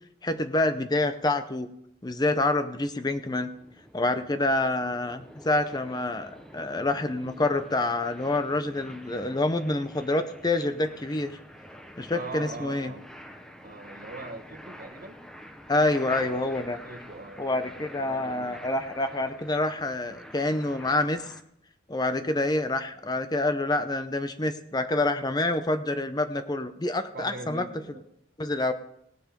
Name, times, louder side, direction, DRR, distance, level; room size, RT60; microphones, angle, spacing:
voice 1, 0.2-1.7 2.0-3.5 3.9-11.4 12.0-12.9 15.7-16.8 17.4-21.2 21.9-27.6 28.4-28.7, left 2 dB, 25° left, 9 dB, 0.7 m, -27 dB
sound 1, 2.7-21.4, equal, 5° left, 1.0 m, -47 dB
voice 2, 12.1-13.0 13.6-15.2 16.8-18.6 27.1-28.0, right 2 dB, 55° right, 5 dB, 1.3 m, -41 dB
18.0 x 7.6 x 5.2 m, 0.72 s
head